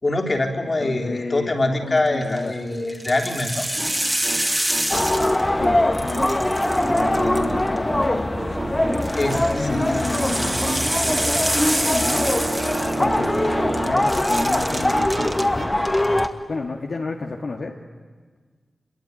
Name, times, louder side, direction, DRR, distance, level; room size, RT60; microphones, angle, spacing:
voice 1, 0.0-3.7 9.2-9.9, left 2 dB, 45° left, 3 dB, 3.9 m, -24 dB
voice 2, 0.8-2.5 5.5-6.4 6.9-8.4 9.6-10.7 11.9-12.3 13.0-13.5 13.8-15.8 16.5-17.8, left 3 dB, 70° left, 0 dB, 2.0 m, -31 dB
sound 1, 2.1-2.4 2.9-5.6 5.9-7.8 8.9-13.5 13.7-15.4 15.8-16.3, right 1 dB, 15° right, 2.5 m, -27 dB
sound 2, 3.6-13.9 14.2-15.7, right 2 dB, 50° right, 4.7 m, -31 dB
sound 3, 4.9-16.3, left 1 dB, 20° left, 1.7 m, -22 dB
25.5 x 23.0 x 9.9 m, 1.5 s
cardioid pair, 45°, 0 cm